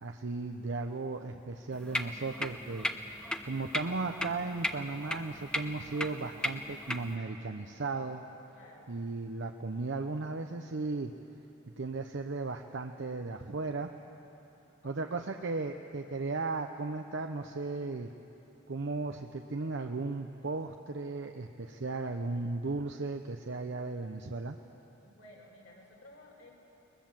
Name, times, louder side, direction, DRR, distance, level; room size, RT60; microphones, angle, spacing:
voice 1, 0.0-8.2 8.9-11.1 11.8-13.9 14.8-18.1 18.7-24.6, right 3 dB, 65° right, 5 dB, 0.7 m, -36 dB
sound 1, 1.7-7.2, left 1 dB, 5° left, 0.8 m, -37 dB
voice 2, 8.5-9.0 14.8-15.2 25.0-26.5, left 1 dB, 70° left, -1 dB, 4.7 m, -55 dB
21.5 x 21.0 x 7.5 m, 3.0 s
head